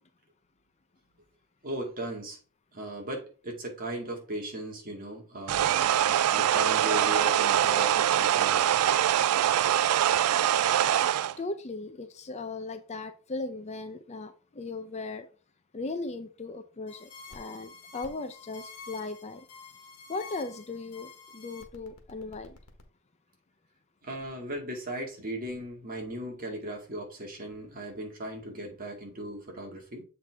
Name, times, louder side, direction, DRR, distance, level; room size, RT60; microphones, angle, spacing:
voice 1, 1.6-2.4 2.7-5.8 6.3-9.1 24.0-30.0, right 1 dB, 40° right, 2.0 m, -37 dB
sound 1, 5.5-11.3, right 11 dB, 80° right, 0.3 m, -24 dB
voice 2, 11.4-15.3 15.7-19.5 20.1-22.6, left 3 dB, 30° left, 0.5 m, -37 dB
sound 2, 16.9-22.8, left 4 dB, 90° left, 1.4 m, -49 dB
7.5 x 4.6 x 3.5 m
head